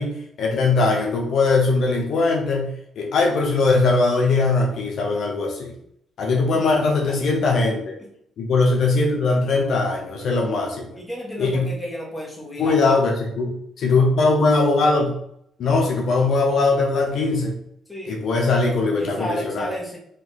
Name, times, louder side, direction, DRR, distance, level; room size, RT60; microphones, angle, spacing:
voice 1, 0.0-5.7 6.2-7.9 8.4-11.0 11.4-11.7 12.6-15.1 15.6-17.5 18.1-19.7, left 3 dB, 65° left, 0 dB, 0.9 m, -20 dB
voice 2, 10.9-13.0 17.9-18.2 19.0-20.0, equal, 10° left, -3 dB, 1.5 m, -32 dB
4.0 x 2.9 x 4.0 m, 0.72 s
cardioid pair, 90°, 0 cm